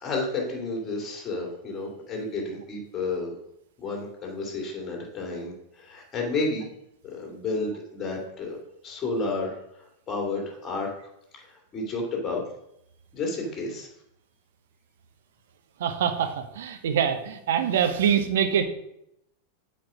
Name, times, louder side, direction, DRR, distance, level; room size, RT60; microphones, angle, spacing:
voice 1, 0.0-3.3 3.8-6.7 7.0-8.6 8.8-11.1 11.4-12.4 13.1-13.9, left 3 dB, 25° left, 0 dB, 2.6 m, -31 dB
voice 2, 15.8-18.7, right 8 dB, 60° right, 9 dB, 0.9 m, -24 dB
7.5 x 4.7 x 6.1 m, 0.79 s
figure-of-eight pair, 90°, 0 cm